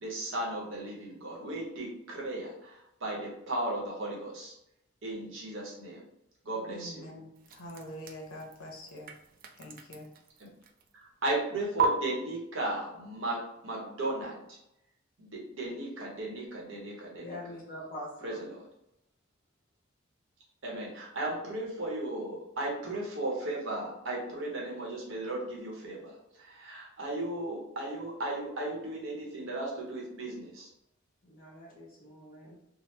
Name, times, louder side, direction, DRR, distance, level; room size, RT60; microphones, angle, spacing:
voice 1, 0.0-4.5 5.0-6.0 6.4-7.1 10.9-14.6 15.2-17.4 18.2-18.5 20.6-30.7, right 1 dB, 70° right, -2 dB, 0.9 m, -36 dB
voice 2, 6.7-9.1 9.6-10.1, equal, 90° left, 1 dB, 0.6 m, -45 dB
sound 1, 7.3-11.1 11.8-11.9, right 7 dB, 45° right, 0.3 m, -36 dB
voice 3, 17.2-18.4 31.2-32.6, left 1 dB, 45° left, -8 dB, 0.7 m, -44 dB
2.8 x 2.0 x 3.2 m, 0.83 s
head